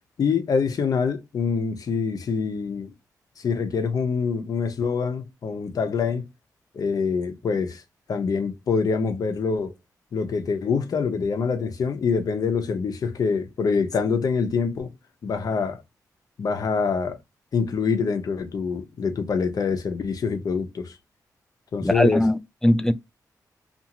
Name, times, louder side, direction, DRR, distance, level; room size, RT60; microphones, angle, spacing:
voice 1, 0.2-2.9 3.4-6.3 6.7-7.8 8.1-9.7 10.1-14.9 15.2-15.8 16.4-17.2 17.5-20.9 21.7-22.2, left 5 dB, 60° left, 0.8 m, -25 dB
voice 2, 21.8-22.9, left 1 dB, 5° left, 0.4 m, -20 dB
2.6 x 2.5 x 2.8 m
cardioid pair, 95°, 7 cm